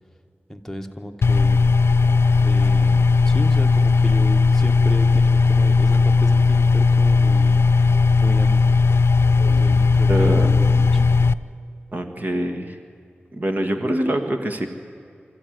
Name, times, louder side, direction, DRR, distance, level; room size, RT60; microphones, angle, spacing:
voice 1, 0.5-1.8 2.4-7.7 8.2-8.8 9.6-11.0, equal, 10° left, 4 dB, 1.5 m, -33 dB
sound 1, 1.2-11.3, left 4 dB, 85° left, 0.5 m, -17 dB
voice 2, 10.1-10.5 11.9-12.8 13.3-14.7, right 1 dB, 45° right, 6 dB, 1.6 m, -24 dB
25.5 x 14.0 x 9.3 m, 2.4 s
wide cardioid pair, 85°, 4 cm